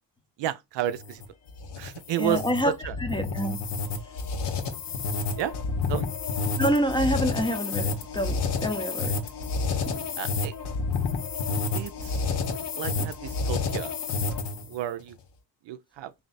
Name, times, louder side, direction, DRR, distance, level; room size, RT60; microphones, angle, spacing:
voice 1, 0.4-1.2 1.8-3.0 5.4-5.5 5.9-6.1 10.2-10.5 11.7-12.2 12.7-13.9 14.7-15.2 15.6-16.1, right 12 dB, 80° right, 0.5 m, -31 dB
sound 1, 0.9-14.7, left 4 dB, 70° left, 0.9 m, -29 dB
voice 2, 2.2-2.7 3.0-3.6 6.6-9.2 9.9-10.0 13.0-13.1, equal, 10° left, 0.6 m, -27 dB
3.3 x 2.8 x 4.0 m
cardioid pair, 115°, 42 cm